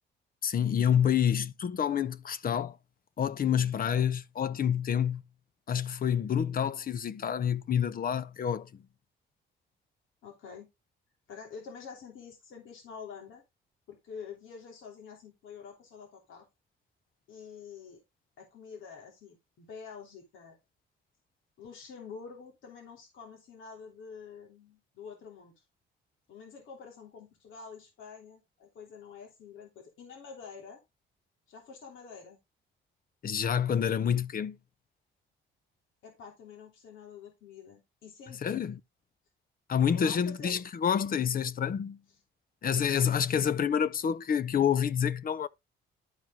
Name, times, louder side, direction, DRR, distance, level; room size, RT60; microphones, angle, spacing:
voice 1, 0.4-2.8 3.2-5.2 5.7-8.8 33.2-34.6 38.3-38.8 39.7-42.0 42.6-45.5, left 8 dB, 45° left, 0.8 m, -28 dB
voice 2, 10.2-10.7 11.3-13.4 13.9-16.5 17.3-18.0 18.4-20.6 21.6-25.5 26.3-30.8 31.5-32.4 36.0-38.7 39.9-40.6 43.3-43.4, left 6 dB, 80° left, 3.0 m, -47 dB
12.0 x 4.5 x 3.6 m
cardioid pair, 90°, 20 cm